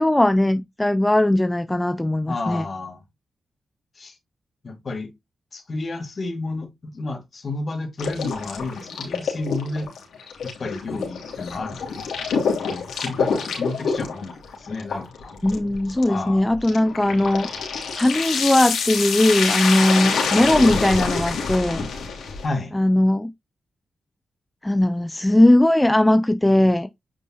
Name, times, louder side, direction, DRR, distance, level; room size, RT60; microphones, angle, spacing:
voice 1, 0.0-2.6 15.4-17.5 18.0-21.9 22.7-23.3 24.6-26.9, left 1 dB, 15° left, 0.7 m, -19 dB
voice 2, 2.3-3.0 4.0-4.2 4.6-5.1 5.5-9.9 10.4-12.0 12.7-15.3 16.0-16.5 22.4-22.7, left 2 dB, 50° left, 2.3 m, -31 dB
sound 1, 8.0-22.5, left 5 dB, 85° left, 3.1 m, -27 dB
9.1 x 5.3 x 2.9 m
cardioid pair, 55°, 0 cm